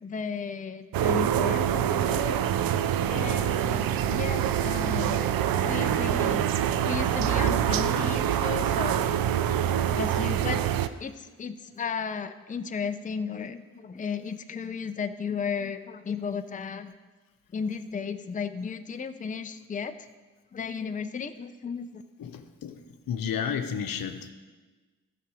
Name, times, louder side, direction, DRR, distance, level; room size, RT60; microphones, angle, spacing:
voice 1, 0.0-2.4 3.1-5.3 5.6-9.2 10.0-10.6 11.0-16.9 17.5-20.1 20.5-22.0, left 6 dB, 25° left, 9 dB, 0.5 m, -34 dB
sound 1, 0.9-10.9, right 10 dB, 85° right, 0.5 m, -25 dB
voice 2, 22.2-22.8 23.1-24.3, left 7 dB, 80° left, 7 dB, 0.9 m, -32 dB
13.5 x 6.2 x 4.9 m, 1.3 s
cardioid pair, 70°, 34 cm